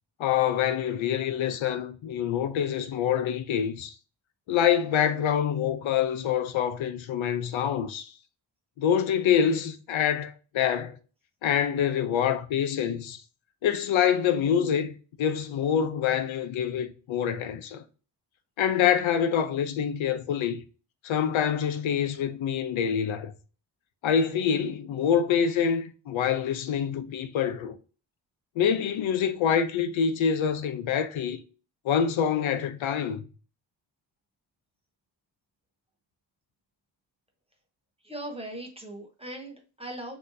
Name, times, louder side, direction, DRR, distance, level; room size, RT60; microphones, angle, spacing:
voice 1, 0.2-3.9 4.5-8.1 8.8-11.0 11.4-13.2 13.6-14.9 15.2-17.8 18.6-20.6 21.0-23.3 24.0-27.8 28.6-31.4 31.8-33.3, left 8 dB, 90° left, 0.7 m, -26 dB
voice 2, 38.0-40.2, right 1 dB, 15° right, 0.8 m, -39 dB
6.3 x 2.9 x 2.6 m
wide cardioid pair, 155°, 45 cm